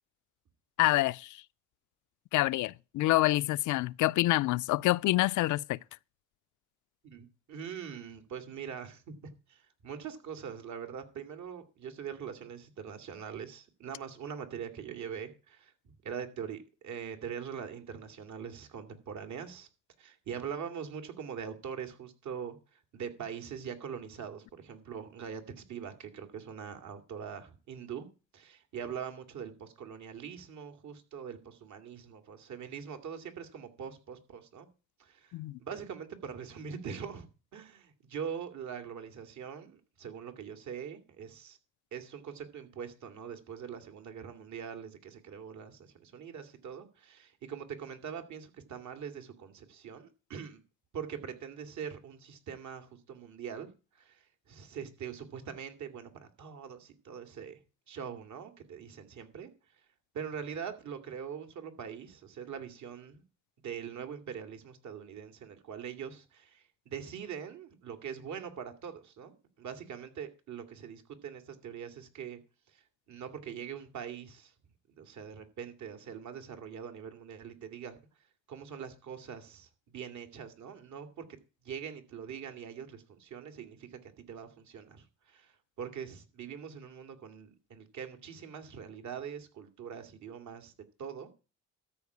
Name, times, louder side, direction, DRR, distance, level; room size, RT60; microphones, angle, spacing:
voice 1, 0.8-1.4 2.3-5.8 35.3-35.6, left 17 dB, 80° left, 0.5 m, -27 dB
voice 2, 7.0-19.7 20.0-28.1 28.3-34.7 35.0-41.6 41.9-50.6 50.9-57.6 57.9-59.9 60.1-63.2 63.6-72.4 72.7-74.5 74.9-81.2 81.6-90.7 91.0-91.3, right 7 dB, 70° right, 2.5 m, -43 dB
13.5 x 4.8 x 8.4 m
cardioid pair, 90°, 30 cm